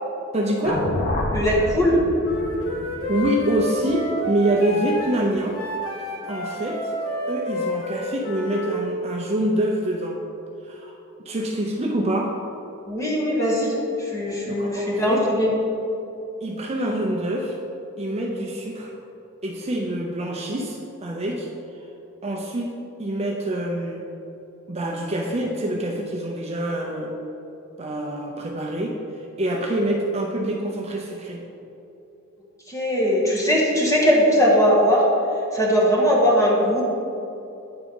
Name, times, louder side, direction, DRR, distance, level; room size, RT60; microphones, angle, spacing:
voice 1, 0.3-0.9 3.1-5.6 6.3-6.9 7.3-10.2 10.6-10.9 11.3-12.3 14.5-15.2 16.4-17.6 18.0-18.9 19.4-21.5 22.2-22.7 23.0-24.1 24.7-27.1 27.8-29.0 29.4-31.4, right 1 dB, 30° right, -1 dB, 0.6 m, -25 dB
sound 1, 0.6-4.9, left 1 dB, 40° left, 0.9 m, -29 dB
voice 2, 1.3-2.0 12.9-15.5 32.7-35.0 35.5-36.8, equal, 15° left, -4 dB, 1.3 m, -20 dB
Wind instrument woodwind instrument, 2.2-8.7, equal, 75° left, 1.6 m, -30 dB
8.8 x 3.6 x 5.3 m, 2.9 s
head